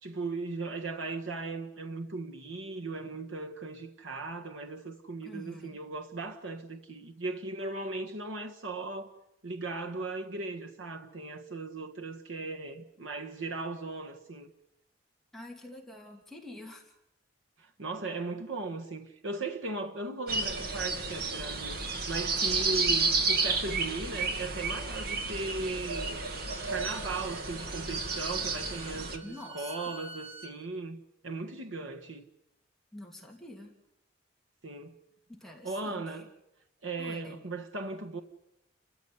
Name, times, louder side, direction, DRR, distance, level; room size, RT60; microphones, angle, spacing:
voice 1, 0.0-9.1 9.4-14.5 17.6-26.3 26.7-31.0 31.2-32.2 34.6-34.9 35.6-36.3 36.8-38.2, right 3 dB, 85° right, 1.6 m, -37 dB
voice 2, 5.2-5.8 15.3-16.9 29.2-29.9 32.9-33.7 35.3-36.2 37.0-37.4, left 1 dB, ahead, 2.9 m, -46 dB
sound 1, 20.3-29.2, right 3 dB, 50° right, 2.1 m, -31 dB
Bowed string instrument, 25.3-30.5, right 2 dB, 25° right, 3.1 m, -48 dB
30.0 x 14.5 x 9.6 m
head